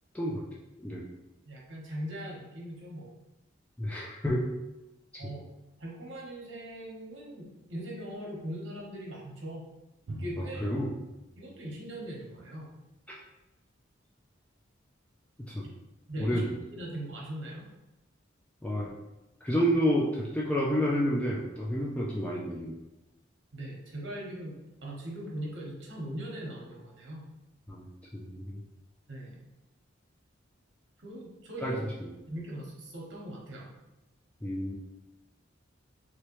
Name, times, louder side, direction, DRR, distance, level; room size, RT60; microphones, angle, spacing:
voice 1, 1.5-3.1 5.2-5.5 5.8-9.6 10.1-10.6 11.4-12.8 16.1-16.4 16.7-17.6 23.5-24.6 24.8-27.3 29.1-29.4 31.0-31.8 32.3-33.7, right 1 dB, 70° right, -3 dB, 1.1 m, -40 dB
voice 2, 3.8-4.5 5.2-5.3 10.4-10.9 15.5-15.6 16.2-16.6 18.6-18.9 19.4-22.7 27.7-27.9 28.1-28.6 31.6-32.1 34.4-34.7, equal, 5° left, -5 dB, 0.4 m, -29 dB
Drum, 10.1-12.5, right 1 dB, 85° right, 0.5 m, -44 dB
3.1 x 3.0 x 3.0 m, 0.96 s
head